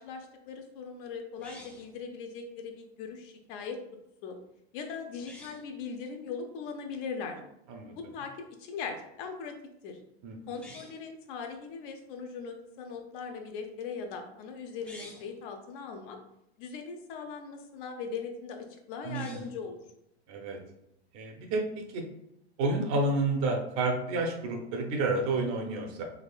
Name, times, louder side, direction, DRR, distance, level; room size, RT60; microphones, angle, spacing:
voice 1, 0.0-3.8 4.2-4.4 4.7-7.4 8.0-8.3 8.6-9.5 9.8-10.0 10.5-16.2 16.6-19.8, left 5 dB, 50° left, 4 dB, 0.7 m, -40 dB
sound 1, 1.4-2.0 5.1-5.7 10.5-11.1 14.7-15.4 19.0-19.6, left 1 dB, 5° left, 0.3 m, -50 dB
voice 2, 19.0-19.5 20.3-20.6 21.1-22.0 22.6-26.0, right 2 dB, 45° right, 2 dB, 0.8 m, -30 dB
3.5 x 3.2 x 2.3 m, 0.80 s
hypercardioid pair, 110°, 33 cm